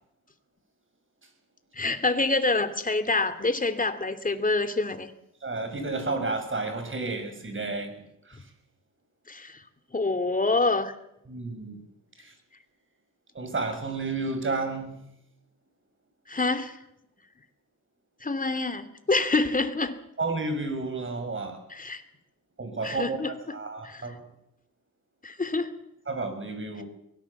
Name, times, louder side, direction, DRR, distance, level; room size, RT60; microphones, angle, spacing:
voice 1, 1.8-5.1 9.3-9.6 9.9-10.9 16.3-16.8 18.2-20.0 21.7-22.0 22.8-23.3 23.8-24.0 25.2-25.7, left 3 dB, 25° left, 9 dB, 2.8 m, -26 dB
voice 2, 5.4-8.5 11.3-11.8 12.2-12.4 13.3-15.0 20.2-21.7 22.6-24.2 26.1-26.8, right 3 dB, 35° right, 6 dB, 7.1 m, -32 dB
23.5 x 18.5 x 7.3 m, 0.81 s
cardioid pair, 85°, 34 cm